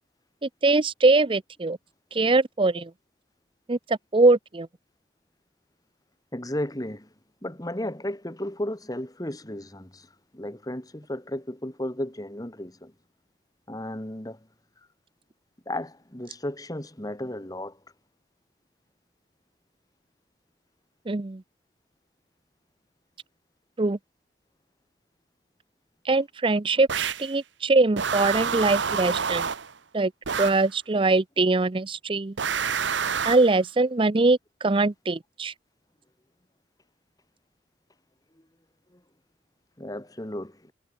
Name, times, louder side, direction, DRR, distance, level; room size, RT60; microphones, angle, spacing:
voice 1, 0.4-1.8 2.1-2.9 3.7-4.7 21.1-21.4 23.8-24.0 26.1-29.5 29.9-30.1 30.4-32.3 33.3-35.5, right 3 dB, 30° right, 0.6 m, -22 dB
voice 2, 6.3-7.1 7.4-10.1 10.3-12.9 13.7-14.4 15.7-17.8 39.8-40.7, left 1 dB, 20° left, 2.1 m, -34 dB
sound 1, 26.9-27.3 28.0-29.7 30.3-30.7 32.4-33.5, right 6 dB, 85° right, 1.1 m, -28 dB
head